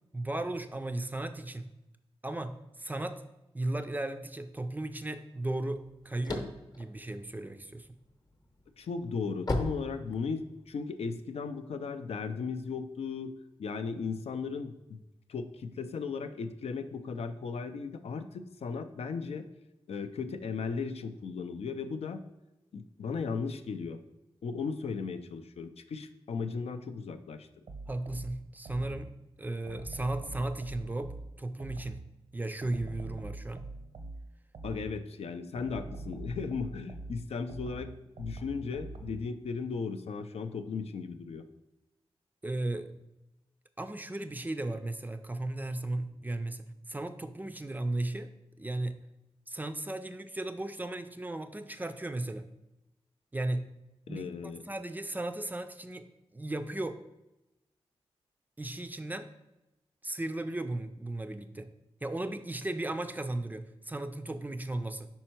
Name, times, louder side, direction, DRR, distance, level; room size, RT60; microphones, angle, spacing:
voice 1, 0.1-1.7 2.2-3.2 3.5-6.5 6.8-7.9 27.9-29.1 29.4-31.1 31.4-32.0 32.3-33.6 42.4-42.9 43.8-48.3 48.6-49.0 49.5-52.5 53.3-53.7 54.1-56.1 56.3-57.0 58.6-59.3 60.0-61.7 62.0-65.1, right 2 dB, 15° right, 9 dB, 0.4 m, -35 dB
sound 1, 5.8-7.9 8.4-10.7, left 2 dB, 40° left, 0.8 m, -34 dB
voice 2, 8.8-13.3 13.6-15.0 15.3-19.5 19.9-22.2 22.7-24.0 24.4-27.5 34.6-37.9 38.2-41.5 54.1-54.6, left 5 dB, 75° left, 8 dB, 0.4 m, -36 dB
sound 2, 27.7-29.2 29.7-32.1 32.6-35.1 35.6-39.3, right 2 dB, 70° right, 0.6 m, -44 dB
5.4 x 4.4 x 4.4 m, 0.96 s
wide cardioid pair, 95°, 11 cm